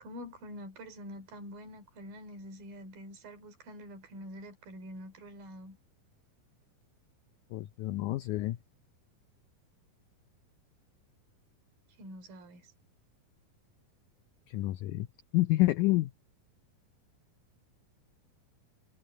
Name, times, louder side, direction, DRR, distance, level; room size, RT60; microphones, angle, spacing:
voice 1, 0.0-5.8 12.0-12.7, equal, 70° right, 4.9 m, -46 dB
voice 2, 7.5-8.6 14.5-15.1 15.3-16.1, left 18 dB, 90° left, 1.7 m, -28 dB
omnidirectional pair, 4.3 m